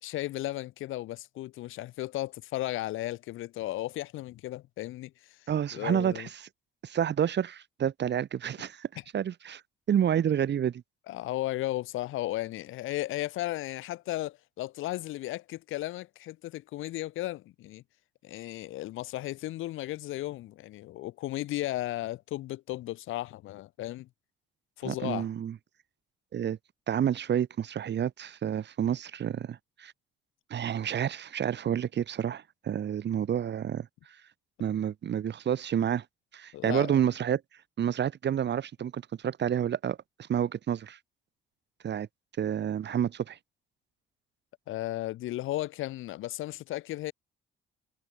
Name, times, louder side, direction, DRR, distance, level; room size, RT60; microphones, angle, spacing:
voice 1, 0.0-5.4 5.7-6.3 11.1-17.8 18.2-24.1 24.8-25.3 36.5-37.0 44.7-47.1, left 16 dB, 90° left, 3.9 m, -35 dB
voice 2, 5.5-6.3 6.8-8.9 9.1-9.6 9.9-10.8 24.8-25.6 26.3-26.6 26.9-29.9 30.5-33.9 34.6-36.0 36.3-37.4 37.8-41.0 41.8-42.1 42.4-43.4, right 9 dB, 60° right, 6.2 m, -29 dB
cardioid pair, 90°, 20 cm